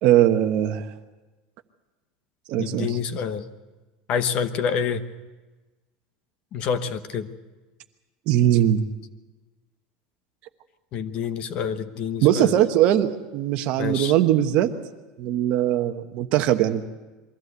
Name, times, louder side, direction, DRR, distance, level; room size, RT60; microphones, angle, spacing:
voice 1, 0.0-0.8 2.5-3.0 8.3-8.8 12.2-14.7 15.2-16.8, right 12 dB, 45° right, 8 dB, 1.1 m, -20 dB
voice 2, 2.6-3.5 4.1-5.0 6.5-7.3 10.9-12.6 13.8-14.1, left 7 dB, 35° left, 11 dB, 1.0 m, -27 dB
23.0 x 15.5 x 8.2 m, 1.2 s
supercardioid pair, 165°, 3 cm